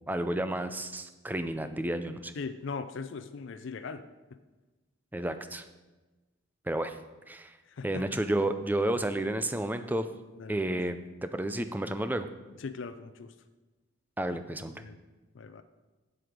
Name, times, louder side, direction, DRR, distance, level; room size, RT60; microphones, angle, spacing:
voice 1, 0.1-2.3 5.1-5.6 6.7-7.0 7.3-7.6 7.8-10.1 10.5-12.3 14.2-14.7, right 1 dB, 10° right, 10 dB, 0.4 m, -31 dB
voice 2, 2.4-4.0 7.8-8.1 10.4-10.6 12.6-13.3 14.8-15.0 15.4-15.6, left 4 dB, 65° left, 10 dB, 0.5 m, -39 dB
7.8 x 7.8 x 5.1 m, 1.2 s
head